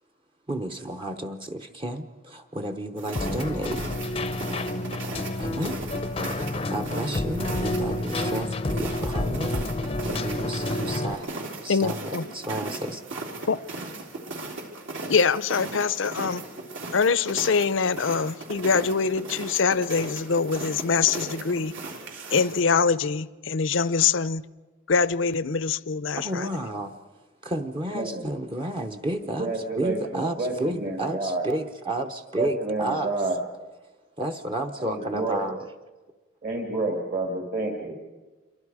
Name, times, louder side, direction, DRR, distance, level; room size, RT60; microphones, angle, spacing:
voice 1, 0.5-3.8 5.4-5.8 6.3-9.5 10.0-11.3 11.6-13.0 26.1-26.9 27.4-33.1 34.2-35.6, right 1 dB, 25° right, 0.9 m, -31 dB
sound 1, 3.0-22.6, right 2 dB, 65° right, 4.0 m, -37 dB
Keyboard (musical), 3.2-11.2, left 2 dB, 25° left, 0.6 m, -29 dB
voice 2, 11.7-12.3 13.4-13.6 15.1-16.4 16.9-21.7 22.3-24.4 24.9-26.5, left 5 dB, 65° left, 0.6 m, -24 dB
voice 3, 27.8-28.3 29.2-31.5 32.4-33.4 34.8-35.4 36.4-38.0, right 2 dB, 45° right, 2.5 m, -29 dB
27.5 x 23.0 x 4.9 m
head